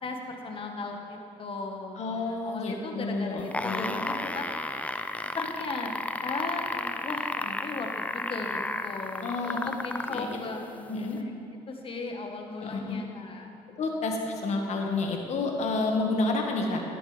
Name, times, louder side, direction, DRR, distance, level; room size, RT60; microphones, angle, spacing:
voice 1, 0.0-3.9 4.2-4.5 5.3-5.9 6.2-11.3 11.7-13.5, left 3 dB, 45° left, 2 dB, 1.5 m, -37 dB
voice 2, 2.0-3.9 9.2-9.6 10.1-10.4 10.9-11.2 12.6-13.0 13.8-16.8, left 3 dB, 60° left, 1 dB, 1.8 m, -30 dB
sound 1, 3.4-10.3 11.2-11.3, left 2 dB, 10° left, 0.5 m, -33 dB
11.5 x 11.0 x 3.4 m, 2.7 s
supercardioid pair, 75°, 13 cm